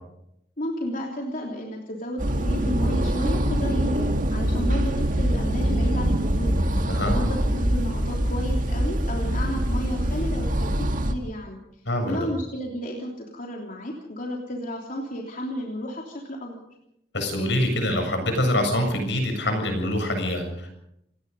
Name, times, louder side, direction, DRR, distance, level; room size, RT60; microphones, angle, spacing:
voice 1, 0.6-6.5 7.0-11.6 12.0-16.6, equal, 50° left, -1 dB, 3.3 m, -32 dB
sound 1, 2.2-11.1, equal, 45° right, 1.9 m, -24 dB
voice 2, 6.9-7.2 11.9-12.3 17.1-20.7, left 1 dB, 75° left, 5 dB, 7.3 m, -25 dB
28.0 x 19.0 x 5.5 m, 0.79 s
head